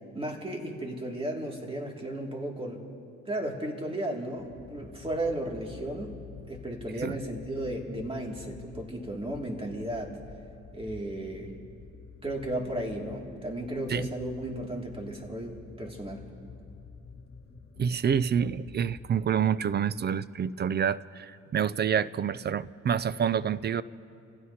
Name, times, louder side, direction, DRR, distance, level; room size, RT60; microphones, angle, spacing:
voice 1, 0.1-2.8 3.3-6.2 6.5-10.1 10.7-11.5 12.2-16.2, right 1 dB, 20° right, 0 dB, 2.5 m, -34 dB
sound 1, 4.3-19.7, left 5 dB, 50° left, 2.6 m, -49 dB
voice 2, 17.8-23.8, right 8 dB, 35° right, 18 dB, 0.4 m, -27 dB
28.5 x 16.0 x 2.8 m, 2.6 s
cardioid pair, 90°, 30 cm